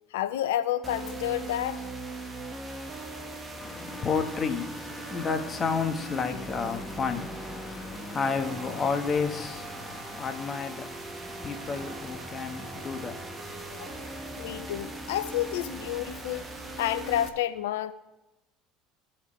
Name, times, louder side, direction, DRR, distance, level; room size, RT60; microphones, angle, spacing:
voice 1, 0.1-1.8 13.8-13.9 14.4-16.4 16.8-17.9, left 12 dB, 80° left, 0.6 m, -30 dB
sound 1, 0.8-17.3, right 2 dB, 25° right, 1.4 m, -40 dB
voice 2, 3.6-15.1, left 5 dB, 35° left, 1.4 m, -32 dB
17.5 x 5.9 x 3.3 m
hypercardioid pair, 70°, 0 cm